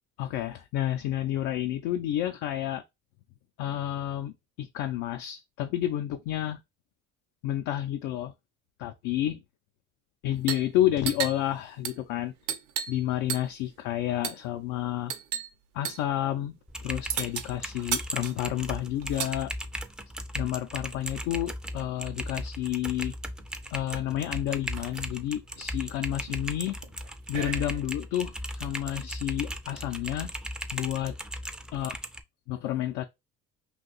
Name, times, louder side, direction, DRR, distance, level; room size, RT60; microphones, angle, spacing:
voice 1, 0.2-2.8 3.6-6.6 7.4-8.3 8.8-9.4 10.2-12.3 12.9-15.1 15.7-16.5 16.8-19.5 20.3-23.2 23.7-26.8 27.3-30.3 30.7-31.2 31.7-32.0 32.5-33.0, left 12 dB, 90° left, 0.5 m, -30 dB
sound 1, 10.4-10.7 11.0-13.0 13.3-13.7 14.2-14.5 15.1-15.5 15.8-16.1 17.1-19.4 20.4-21.5 22.7-22.8 23.1-23.7 24.2-24.3 24.5-25.0 25.5-28.0, right 8 dB, 80° right, 0.7 m, -36 dB
Typing, 16.7-32.2, equal, 5° right, 0.3 m, -37 dB
2.7 x 2.3 x 3.9 m
cardioid pair, 110°, 30 cm